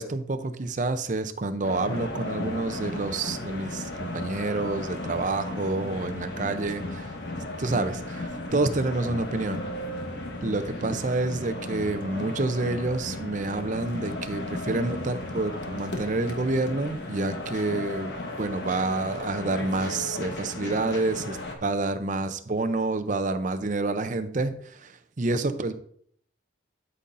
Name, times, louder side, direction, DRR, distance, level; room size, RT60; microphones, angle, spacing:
voice 1, 0.0-7.1 7.6-9.6 10.4-25.7, right 2 dB, 40° right, 9 dB, 0.5 m, -28 dB
sound 1, 1.6-21.5, left 1 dB, 60° left, 1.2 m, -35 dB
12.5 x 5.4 x 2.6 m, 0.63 s
head